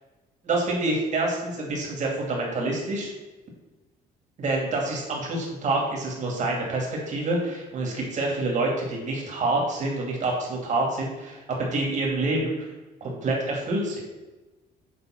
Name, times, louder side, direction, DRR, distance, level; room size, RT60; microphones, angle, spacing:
voice 1, 0.4-3.1 4.4-12.7 13.0-14.0, right 2 dB, 45° right, -1 dB, 2.4 m, -27 dB
7.1 x 3.9 x 5.8 m, 1.1 s
cardioid pair, 110°, 17 cm